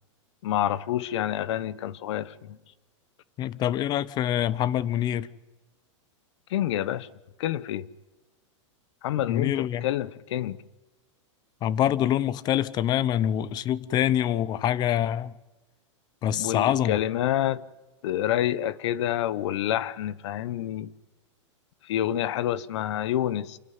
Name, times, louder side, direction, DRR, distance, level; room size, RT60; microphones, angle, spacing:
voice 1, 0.4-2.6 6.5-7.1 7.4-7.9 9.0-10.6 16.4-17.6 18.0-20.9 21.9-23.6, left 12 dB, 65° left, 1.0 m, -28 dB
voice 2, 3.4-5.3 9.2-9.9 11.6-15.3 16.2-17.0, left 11 dB, 25° left, 0.7 m, -25 dB
29.0 x 11.5 x 9.5 m
supercardioid pair, 145°, 16 cm